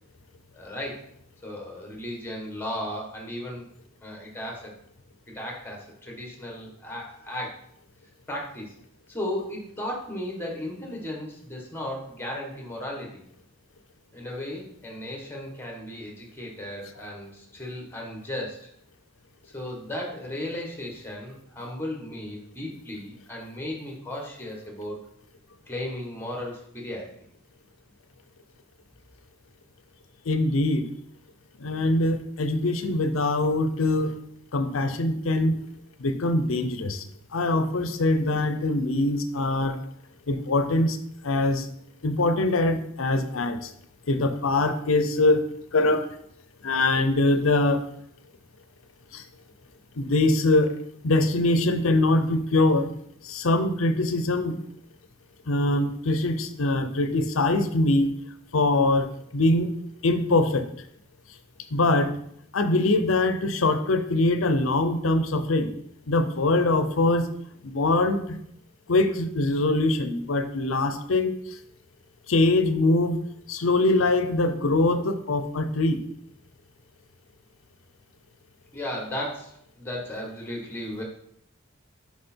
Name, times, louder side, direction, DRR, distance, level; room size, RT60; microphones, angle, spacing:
voice 1, 0.5-1.1 1.4-3.6 4.0-4.7 5.3-7.6 8.3-8.7 9.1-13.2 14.1-18.7 19.5-25.0 25.7-27.1 78.7-81.0, left 1 dB, 10° left, 0 dB, 1.4 m, -35 dB
voice 2, 30.3-30.8 31.6-34.1 34.5-35.6 36.0-37.0 37.3-39.8 40.3-41.0 41.2-41.7 42.0-43.7 44.1-45.4 45.7-46.1 46.6-47.8 49.1-49.2 50.0-50.7 51.0-52.9 53.2-54.5 55.5-58.1 58.5-59.7 60.0-60.7 61.7-62.1 62.5-65.7 66.1-67.3 67.6-68.4 68.9-71.3 72.3-73.2 73.5-76.0, left 2 dB, 80° left, 9 dB, 0.7 m, -23 dB
6.5 x 4.9 x 4.4 m, 0.71 s
head